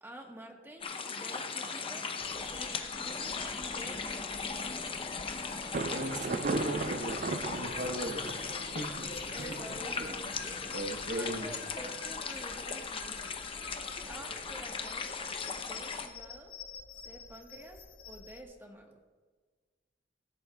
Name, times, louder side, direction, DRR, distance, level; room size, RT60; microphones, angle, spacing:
voice 1, 0.0-2.1 2.4-4.5 8.8-13.4 14.1-15.2 15.5-16.6 16.9-19.0, right 1 dB, 15° right, 1 dB, 1.3 m, -49 dB
sound 1, 0.8-16.1, left 5 dB, 30° left, 0.7 m, -38 dB
sound 2, 2.2-18.4, left 4 dB, 55° left, 1.1 m, -50 dB
Thunder, 5.7-11.4, right 3 dB, 45° right, 0.4 m, -38 dB
voice 2, 5.9-8.3 8.7-8.9 10.7-11.6, right 1 dB, 70° right, 6 dB, 1.1 m, -36 dB
16.5 x 9.9 x 2.4 m, 1.4 s
head